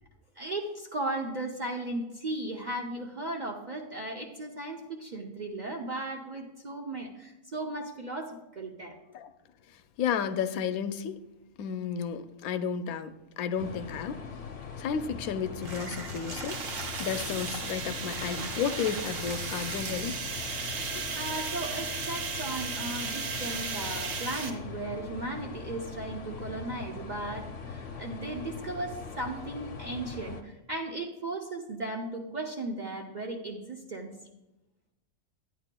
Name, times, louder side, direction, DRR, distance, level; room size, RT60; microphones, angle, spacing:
voice 1, 0.4-9.0 21.1-34.1, right 2 dB, 45° right, 1 dB, 0.6 m, -36 dB
voice 2, 10.0-11.2 11.6-14.2 14.8-16.6 17.0-20.1 20.9-21.0, left 7 dB, 80° left, 10 dB, 1.0 m, -32 dB
sound 1, 13.6-30.4, left 5 dB, 55° left, 0.9 m, -41 dB
sound 2, 15.6-20.2, right 4 dB, 65° right, 1.4 m, -41 dB
sound 3, 16.5-24.5, right 5 dB, 90° right, 1.5 m, -36 dB
11.0 x 9.2 x 2.2 m, 0.97 s
omnidirectional pair, 1.5 m